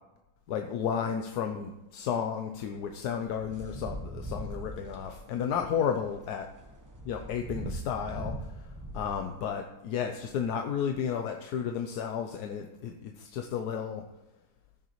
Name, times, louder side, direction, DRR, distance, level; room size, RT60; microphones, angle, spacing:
voice 1, 0.5-6.5 7.1-14.0, left 7 dB, 70° left, 4 dB, 1.1 m, -33 dB
sound 1, 2.6-9.6, right 1 dB, 15° right, 0.6 m, -41 dB
14.5 x 6.6 x 3.1 m, 0.97 s
omnidirectional pair, 2.0 m